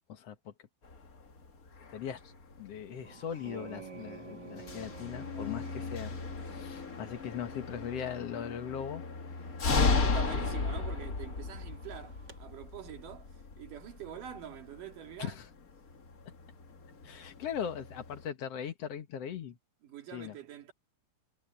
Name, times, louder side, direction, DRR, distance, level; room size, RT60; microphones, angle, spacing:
voice 1, 0.1-0.5 1.9-2.3 2.6-6.2 6.5-9.0 15.2-15.5 17.0-19.6 20.1-20.3, left 8 dB, 55° left, 2.2 m, -39 dB
sound 1, 0.8-18.3, left 4 dB, 35° left, 1.5 m, -36 dB
sound 2, 3.0-12.4, right 5 dB, 35° right, 2.2 m, -52 dB
voice 2, 9.7-15.4 19.8-20.7, right 9 dB, 70° right, 4.0 m, -45 dB
omnidirectional pair, 3.9 m